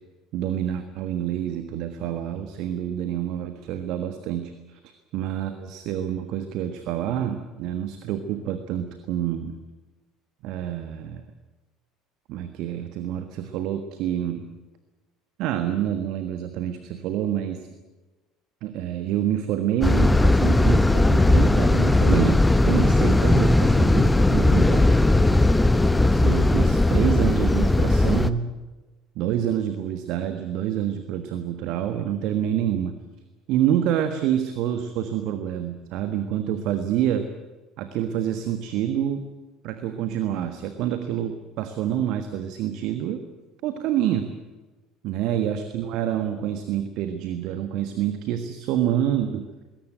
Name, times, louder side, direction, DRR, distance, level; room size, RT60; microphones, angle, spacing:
voice 1, 0.3-9.6 10.4-11.2 12.3-14.5 15.4-17.7 18.6-25.0 26.0-28.5 29.1-33.0 33.5-37.3 37.8-39.3 39.6-43.2 43.6-44.3 45.0-49.5, right 10 dB, 55° right, 8 dB, 1.5 m, -27 dB
sound 1, 19.8-28.3, left 2 dB, 10° left, 1.0 m, -18 dB
21.0 x 18.0 x 9.1 m, 1.2 s
figure-of-eight pair, 60°, 0 cm